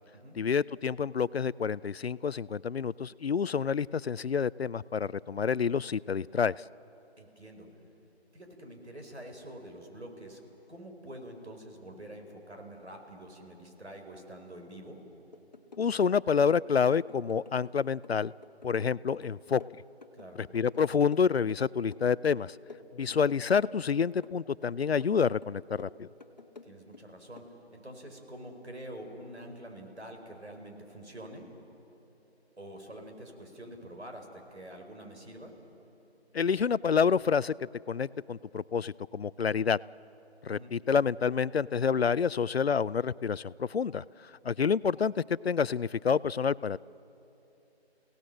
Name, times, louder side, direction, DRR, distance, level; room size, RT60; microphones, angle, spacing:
voice 1, 0.4-6.5 15.8-18.3 18.6-19.6 20.4-22.5 23.0-26.1 36.3-37.5 37.9-39.8 40.4-44.0 44.4-46.8, left 6 dB, 65° left, 21 dB, 0.5 m, -28 dB
voice 2, 7.2-7.7 8.3-10.4 10.7-15.0 20.1-20.4 26.6-27.4 27.7-31.4 32.6-35.5 40.5-40.7, right 1 dB, 85° right, 3 dB, 4.8 m, -46 dB
sound 1, 15.3-15.9 16.1-17.7 18.0-20.8 21.1-22.1 22.3-23.9 24.2-25.2 25.4-27.0 27.4-27.5, left 4 dB, 40° left, 1.3 m, -51 dB
29.0 x 17.5 x 7.6 m, 3.0 s
figure-of-eight pair, 160°, 33 cm